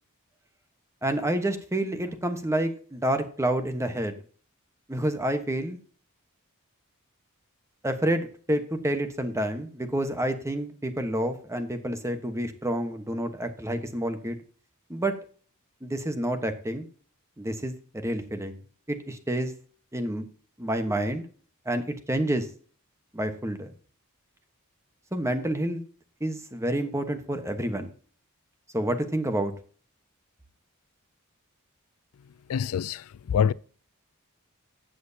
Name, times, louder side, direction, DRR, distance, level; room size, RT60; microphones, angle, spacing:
voice 1, 1.0-4.2 4.9-5.8 7.8-14.4 14.9-15.2 15.8-16.9 17.4-18.6 18.9-19.5 19.9-20.2 20.6-21.3 21.6-22.5 23.1-23.7 25.1-25.8 26.2-27.9 28.7-29.5, right 1 dB, 15° right, 1.1 m, -28 dB
voice 2, 32.5-33.5, left 7 dB, 75° left, 0.4 m, -25 dB
15.0 x 7.8 x 2.8 m
head